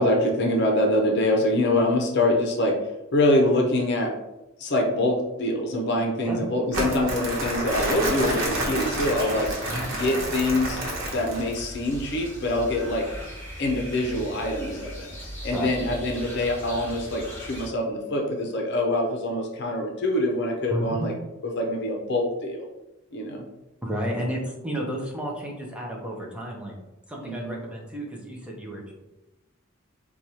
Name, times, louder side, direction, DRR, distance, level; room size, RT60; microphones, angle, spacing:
voice 1, 0.0-2.8 3.1-4.1 4.6-9.5 9.9-10.8 11.1-13.1 13.6-15.1 15.4-21.1 21.4-22.7 23.1-23.5 27.2-27.6, left 1 dB, 60° left, 2 dB, 0.6 m, -24 dB
Crumpling crinkling, 6.7-11.6, right 1 dB, 85° right, 0.9 m, -29 dB
sound 1, 7.7-17.7, equal, 10° left, 1.2 m, -39 dB
voice 2, 20.7-21.1 23.8-26.7 27.1-28.9, equal, 5° right, -2 dB, 0.6 m, -32 dB
4.5 x 2.3 x 2.8 m, 0.97 s
head